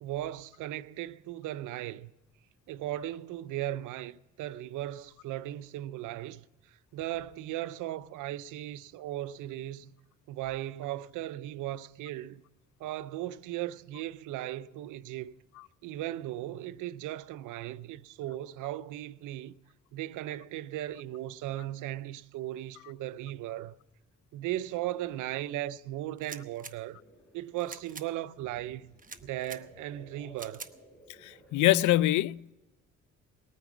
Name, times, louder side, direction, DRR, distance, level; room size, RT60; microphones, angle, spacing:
voice 1, 0.0-2.1 2.7-9.9 10.3-12.4 12.8-15.3 15.8-19.6 19.9-23.8 24.3-27.0 27.3-30.7, right 14 dB, 90° right, 0.6 m, -37 dB
sound 1, 26.2-26.7 27.6-28.1 29.0-29.6 30.4-30.7, right 5 dB, 25° right, 0.9 m, -45 dB
sound 2, 27.0-32.0, equal, 5° left, 5.7 m, -57 dB
voice 2, 31.5-32.5, left 15 dB, 75° left, 0.5 m, -23 dB
19.5 x 9.5 x 6.0 m
cardioid pair, 90°, 30 cm